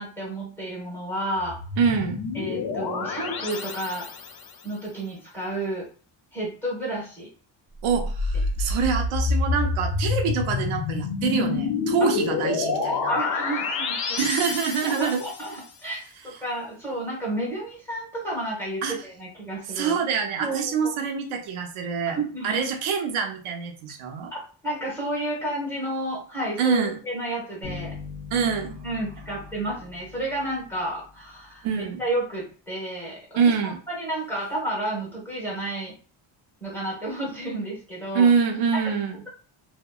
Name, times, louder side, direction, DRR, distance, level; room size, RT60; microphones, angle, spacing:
voice 1, 0.0-1.6 2.3-4.1 4.6-5.9 6.3-7.3 12.0-12.1 13.1-14.2 14.8-20.0 20.4-20.9 22.1-22.6 24.3-28.0 28.8-35.9 36.6-38.3 38.7-38.8, right 1 dB, 5° left, -4 dB, 1.1 m, -31 dB
sound 1, 1.4-4.5 7.8-15.5, left 4 dB, 50° left, 0.5 m, -28 dB
voice 2, 1.8-2.2 7.8-13.2 14.2-15.2 18.8-19.0 19.7-22.2 22.4-24.3 26.6-27.0 28.3-28.9 31.6-32.0 33.4-33.8 38.1-39.2, right 6 dB, 85° right, 3 dB, 0.6 m, -25 dB
sound 2, 27.6-31.4, left 5 dB, 85° left, 1.0 m, -41 dB
2.8 x 2.0 x 2.2 m, 0.38 s
cardioid pair, 145°, 47 cm